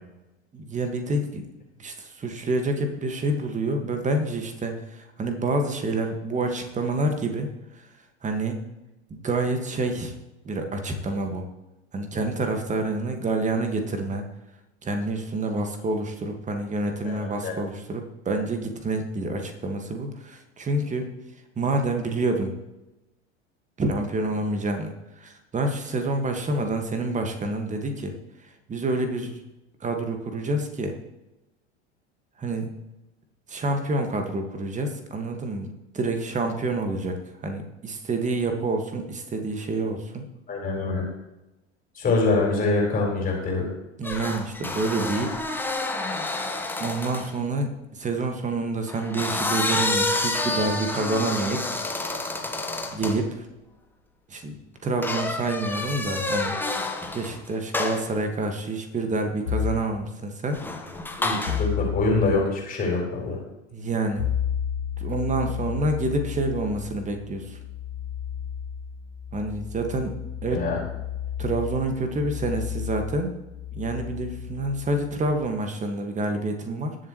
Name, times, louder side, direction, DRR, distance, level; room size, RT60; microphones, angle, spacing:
voice 1, 0.5-1.4 1.8-7.5 7.7-7.8 8.2-8.6 9.2-10.1 10.4-11.5 11.9-14.2 14.8-21.1 21.6-22.5 23.8-28.1 28.7-29.3 29.8-30.9 32.4-32.7 33.5-35.7 35.9-37.2 37.4-40.2 44.0-45.3 46.8-51.8 52.9-53.5 54.3-54.5 54.8-56.5 57.1-60.6 61.1-61.2 63.7-64.3 65.0-67.6 69.3-70.1 70.4-70.6 71.4-73.4 73.7-76.9, right 2 dB, 20° right, 5 dB, 1.8 m, -28 dB
voice 2, 16.9-17.5 40.5-41.0 41.9-43.7 61.2-63.4 70.5-70.8, left 3 dB, 25° left, -2 dB, 4.5 m, -25 dB
sound 1, 44.0-47.3 48.9-53.2 55.0-57.4 57.7-58.1 60.5-61.7, left 2 dB, 5° left, 1.3 m, -29 dB
sound 2, 59.5-59.9 61.4-62.4 64.2-75.5, left 8 dB, 75° left, 1.9 m, -32 dB
20.0 x 7.5 x 3.2 m, 1.0 s
figure-of-eight pair, 80°, 35 cm